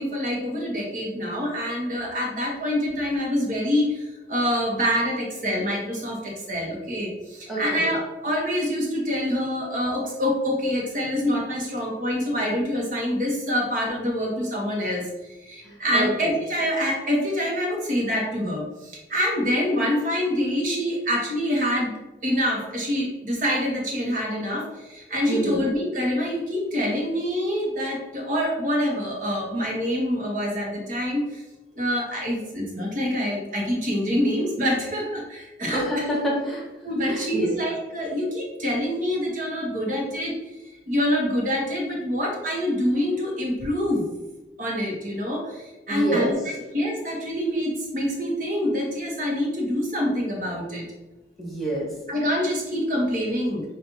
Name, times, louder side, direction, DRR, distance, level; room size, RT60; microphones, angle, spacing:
voice 1, 0.0-15.1 15.4-21.9 22.2-31.4 31.7-36.0 36.8-40.3 40.9-44.1 44.6-46.3 46.7-50.8 52.1-53.6, equal, 45° right, -2 dB, 1.1 m, -26 dB
voice 2, 7.5-7.9 15.6-16.3 25.3-25.6 35.7-36.6 37.0-37.5 45.9-46.4 51.4-51.9, right 1 dB, ahead, -7 dB, 1.3 m, -27 dB
7.0 x 2.6 x 2.7 m, 1.1 s
head